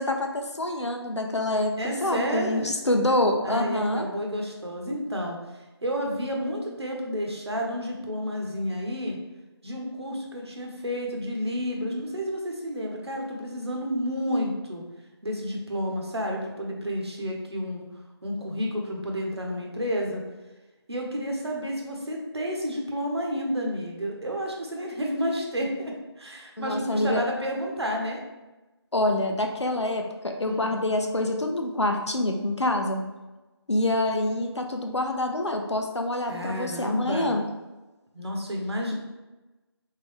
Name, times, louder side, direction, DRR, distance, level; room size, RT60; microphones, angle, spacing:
voice 1, 0.0-4.1 26.6-27.2 28.9-33.0 33.7-37.4, left 1 dB, 85° left, 3 dB, 0.8 m, -26 dB
voice 2, 1.8-2.7 3.4-5.4 5.8-9.2 9.6-14.8 15.2-17.9 18.2-20.2 20.9-28.2 29.9-30.0 30.4-30.7 36.3-37.4 38.1-38.9, equal, 65° right, 0 dB, 1.1 m, -30 dB
3.8 x 3.8 x 3.2 m, 1.1 s
figure-of-eight pair, 165°, 14 cm